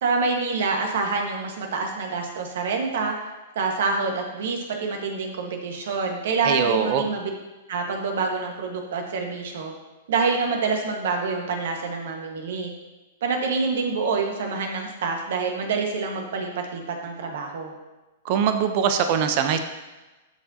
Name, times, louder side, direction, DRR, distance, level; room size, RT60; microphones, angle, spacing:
voice 1, 0.0-3.1 3.5-7.3 7.7-9.7 10.1-12.7 13.2-17.7, right 4 dB, 65° right, 2 dB, 1.5 m, -26 dB
voice 2, 6.4-7.0 18.2-19.6, right 8 dB, 50° right, 7 dB, 0.7 m, -22 dB
13.0 x 4.6 x 2.8 m, 1.1 s
hypercardioid pair, 110°, 0 cm